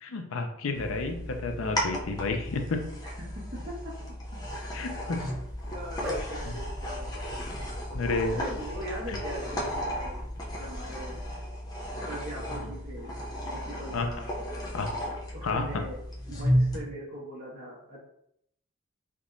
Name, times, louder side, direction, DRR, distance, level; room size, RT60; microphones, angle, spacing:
voice 1, 0.0-2.8 4.7-5.2 7.9-8.4 9.1-9.2 13.9-14.1 14.7-14.9 15.4-15.8, left 3 dB, 80° left, 5 dB, 0.5 m, -31 dB
sound 1, 0.7-16.8, equal, 20° left, 0.5 m, -34 dB
voice 2, 3.0-3.7 5.6-7.4 8.3-10.2 10.6-11.2 12.0-13.1 13.4-14.3 15.3-16.0 16.3-18.0, right 1 dB, 45° right, -5 dB, 1.3 m, -40 dB
Dog, 5.4-11.4, equal, 5° right, 1.4 m, -41 dB
3.4 x 2.9 x 2.5 m, 0.73 s
head